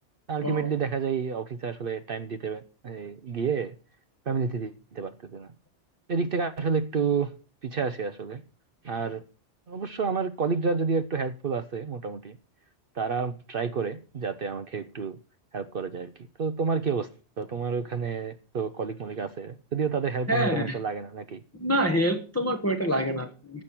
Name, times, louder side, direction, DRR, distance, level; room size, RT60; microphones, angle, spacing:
voice 1, 0.3-3.8 4.3-5.5 6.1-7.3 7.6-8.4 8.8-9.2 9.7-12.4 12.9-15.2 15.5-17.1 17.4-21.4, right 5 dB, 55° right, 0.9 m, -30 dB
voice 2, 20.3-20.7 21.6-23.6, equal, 15° left, 1.2 m, -26 dB
15.5 x 6.4 x 5.9 m
omnidirectional pair, 1.2 m